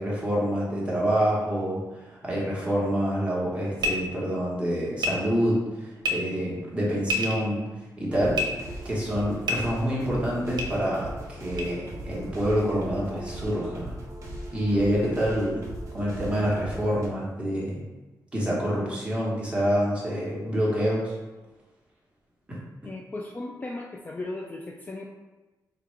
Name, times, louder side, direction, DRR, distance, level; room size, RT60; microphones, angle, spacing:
voice 1, 0.0-7.6 8.0-8.4 8.8-13.9 14.5-15.6 15.9-17.8 18.3-21.2 22.5-22.6, equal, 15° right, -5 dB, 1.2 m, -27 dB
sound 1, 3.8-3.9 5.0-5.1 6.0-6.1 7.0-7.4 8.3-8.4 9.4-9.6 10.6-10.7 11.6-11.7, left 1 dB, 75° right, 0.7 m, -26 dB
sound 2, 8.1-17.1, right 1 dB, 45° right, 0.9 m, -39 dB
voice 2, 22.8-25.1, left 2 dB, 25° left, 0 dB, 0.3 m, -36 dB
3.6 x 2.3 x 4.3 m, 1.1 s
wide cardioid pair, 120°, 7 cm